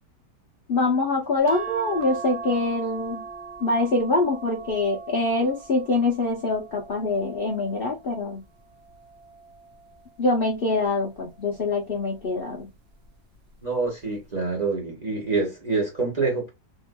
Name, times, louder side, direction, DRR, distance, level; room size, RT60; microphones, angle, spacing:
voice 1, 0.7-3.2 3.6-8.4 10.2-12.7, left 2 dB, 45° left, 0.7 m, -24 dB
sound 1, 1.5-8.1 8.7-10.1 11.4-11.8 12.1-12.2, right 5 dB, 50° right, 0.9 m, -39 dB
voice 2, 13.6-16.5, right 3 dB, 25° right, 1.3 m, -26 dB
3.6 x 3.1 x 2.2 m
omnidirectional pair, 1.8 m